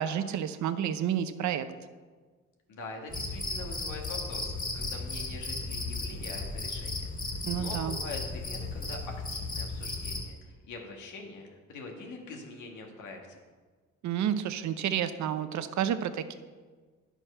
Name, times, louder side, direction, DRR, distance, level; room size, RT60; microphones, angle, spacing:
voice 1, 0.0-1.7 7.4-8.0 14.0-16.3, right 9 dB, 70° right, 11 dB, 0.7 m, -30 dB
voice 2, 2.7-13.4, left 3 dB, 85° left, 1 dB, 1.8 m, -44 dB
Cricket, 3.1-10.3, left 3 dB, 30° left, 2.3 m, -35 dB
9.9 x 6.0 x 5.5 m, 1.4 s
cardioid pair, 90°, 30 cm